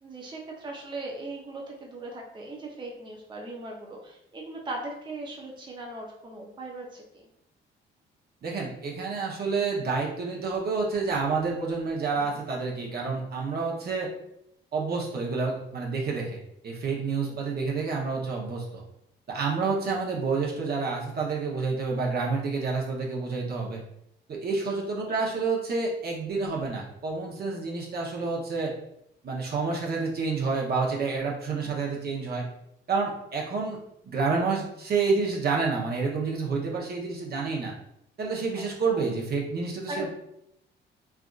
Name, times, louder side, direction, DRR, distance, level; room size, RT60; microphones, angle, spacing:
voice 1, 0.0-7.3 12.1-12.4 17.3-17.4 19.6-19.7 24.6-24.8 31.6-31.8 38.5-39.1 39.9-40.1, right 2 dB, 25° right, -1 dB, 0.6 m, -39 dB
voice 2, 8.4-14.1 14.7-18.8 19.3-23.8 24.3-28.7 29.2-32.5 32.9-33.8 34.0-37.7 38.2-40.1, right 4 dB, 55° right, -2 dB, 0.8 m, -29 dB
3.4 x 2.5 x 2.4 m, 0.78 s
cardioid pair, 90°, 20 cm